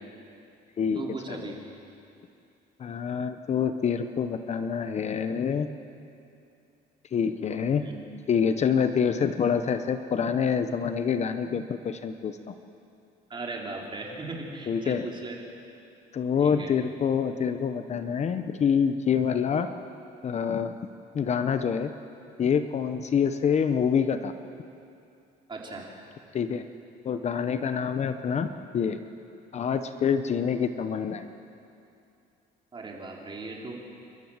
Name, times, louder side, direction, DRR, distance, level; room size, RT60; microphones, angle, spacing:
voice 1, 0.9-1.6 7.8-8.0 13.3-15.4 16.4-16.7 25.5-25.9 32.7-33.7, right 3 dB, 30° right, -1 dB, 3.8 m, -37 dB
voice 2, 2.8-5.7 7.1-7.8 8.3-12.6 14.7-15.1 16.1-19.7 20.2-20.8 21.1-21.9 22.4-24.3 26.3-26.6 27.0-28.5 28.7-29.0 29.5-31.3, left 7 dB, 40° left, 9 dB, 0.9 m, -26 dB
28.5 x 12.5 x 7.4 m, 2.6 s
cardioid pair, 110°, 17 cm